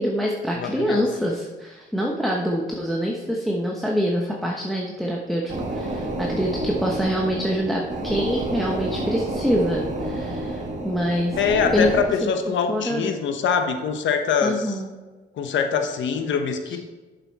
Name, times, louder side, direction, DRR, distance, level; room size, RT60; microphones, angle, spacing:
voice 1, 0.0-11.4 11.7-11.9 12.2-12.3 12.7-13.1 14.4-14.9 16.7-16.8, equal, ahead, -1 dB, 1.0 m, -25 dB
voice 2, 0.6-1.0 11.4-14.8 15.4-16.8, left 6 dB, 70° left, 5 dB, 1.0 m, -23 dB
sound 1, 5.5-12.0, right 1 dB, 35° right, 1.8 m, -29 dB
8.0 x 6.8 x 4.2 m, 1.3 s
cardioid pair, 90°, 20 cm